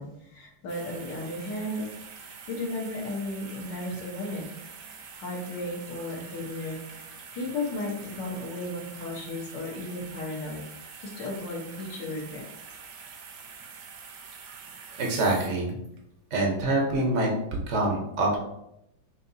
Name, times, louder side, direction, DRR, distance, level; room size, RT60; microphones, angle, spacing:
voice 1, 0.0-1.9 2.5-4.5 5.1-6.8 7.0-10.6 11.0-12.5, left 1 dB, 65° left, -2 dB, 1.7 m, -34 dB
sound 1, 0.7-16.0 16.5-16.6, right 6 dB, 70° right, 1.2 m, -45 dB
voice 2, 15.0-15.8 16.3-17.3 17.7-18.4, right 2 dB, 55° right, -1 dB, 0.8 m, -25 dB
5.8 x 2.6 x 2.7 m, 0.81 s
omnidirectional pair, 2.1 m